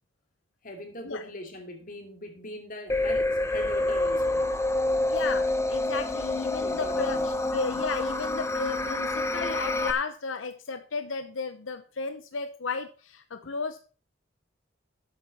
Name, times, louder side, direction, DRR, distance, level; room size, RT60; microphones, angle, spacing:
voice 1, 0.6-4.5 6.6-7.2 7.6-7.9, left 1 dB, 45° left, 2.7 m, -41 dB
sound 1, 2.9-9.9, left 2 dB, 15° left, 0.9 m, -27 dB
voice 2, 5.1-13.8, left 4 dB, 85° left, 0.8 m, -34 dB
12.0 x 8.6 x 4.2 m
head